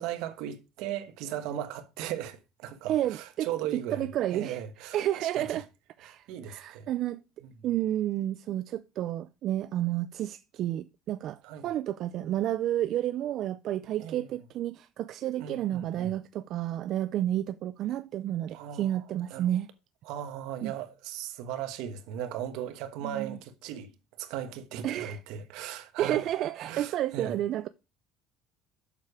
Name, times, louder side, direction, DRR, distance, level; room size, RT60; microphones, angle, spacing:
voice 1, 0.0-5.5 6.0-6.9 11.4-11.7 14.0-14.3 15.4-16.1 18.5-19.0 19.3-19.5 20.0-23.9 24.2-26.3 26.6-27.4, right 10 dB, 75° right, 1.2 m, -37 dB
voice 2, 2.9-4.6 4.9-5.6 6.0-7.2 7.6-19.7 20.6-20.7 23.0-23.4 24.8-25.2 26.0-27.7, right 12 dB, 55° right, 0.4 m, -31 dB
7.3 x 6.8 x 4.8 m
cardioid pair, 130°, 0 cm